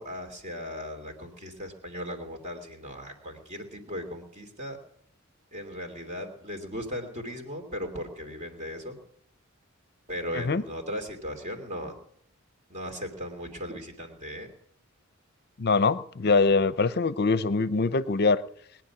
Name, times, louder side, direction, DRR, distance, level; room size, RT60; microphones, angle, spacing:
voice 1, 0.0-4.8 5.5-9.0 10.1-12.0 12.7-14.5, equal, 35° right, 2.8 m, -37 dB
voice 2, 15.6-18.4, left 4 dB, 50° left, 0.6 m, -23 dB
21.0 x 10.5 x 5.9 m
head